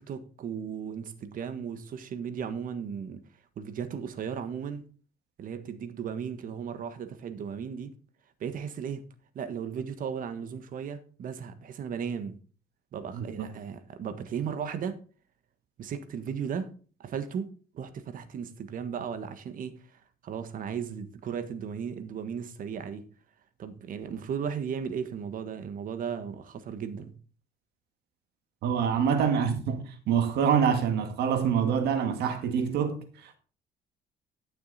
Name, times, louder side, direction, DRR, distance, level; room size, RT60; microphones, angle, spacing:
voice 1, 0.0-3.2 3.6-4.8 5.4-7.9 8.4-9.0 9.3-12.4 12.9-15.0 15.8-16.7 17.0-20.0 20.2-23.1 23.6-27.1, right 7 dB, 55° right, 1.5 m, -36 dB
voice 2, 13.1-13.5 28.6-33.4, right 7 dB, 75° right, 2.0 m, -26 dB
12.0 x 6.7 x 4.2 m
cardioid pair, 110°, 17 cm